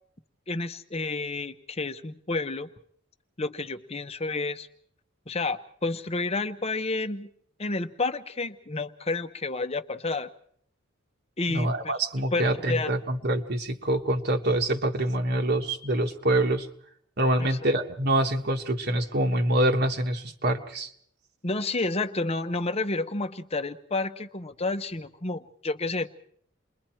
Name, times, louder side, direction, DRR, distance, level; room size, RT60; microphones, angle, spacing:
voice 1, 0.5-2.7 3.4-4.7 5.3-7.3 7.6-10.3 11.4-11.9 12.3-12.9 17.4-17.6 21.4-26.1, left 3 dB, 30° left, 11 dB, 0.9 m, -30 dB
voice 2, 11.5-16.7 17.2-20.9, right 1 dB, 50° right, 4 dB, 1.4 m, -25 dB
29.0 x 22.0 x 4.5 m, 0.64 s
head